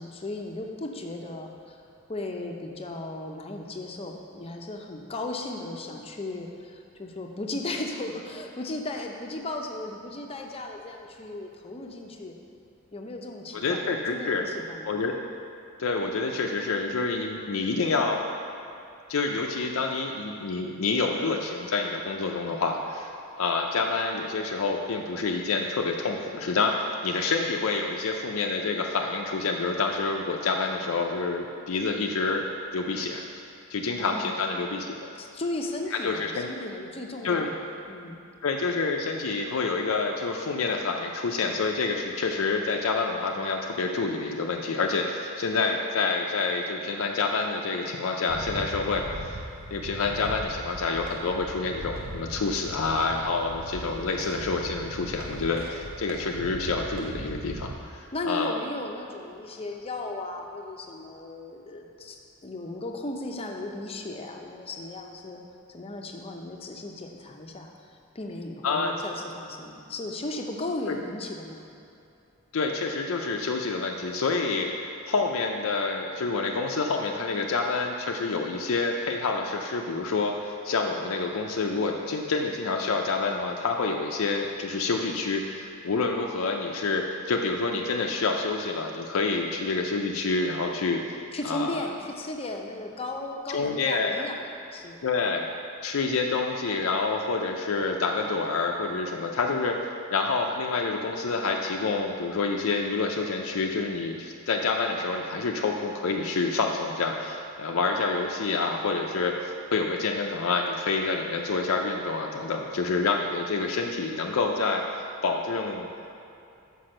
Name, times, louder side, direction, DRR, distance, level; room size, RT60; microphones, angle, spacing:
voice 1, 0.0-1.8 2.1-12.4 12.9-14.9 34.0-34.4 35.2-38.2 58.1-65.4 65.7-67.7 68.1-71.7 91.3-95.0, left 2 dB, 25° left, 2 dB, 0.6 m, -36 dB
voice 2, 13.5-14.4 14.9-15.2 15.8-18.2 19.1-23.1 23.4-32.5 32.7-33.2 33.7-34.9 35.9-36.5 37.2-37.5 38.4-49.4 49.7-58.6 68.6-68.9 70.9-71.0 72.5-74.7 75.1-91.0 91.4-91.9 93.5-94.3 95.0-95.5 95.8-99.8 100.1-115.9, left 4 dB, 70° left, 1 dB, 0.5 m, -28 dB
sound 1, 48.3-57.7, right 1 dB, 45° right, 0.6 m, -39 dB
5.9 x 5.3 x 6.4 m, 2.7 s
head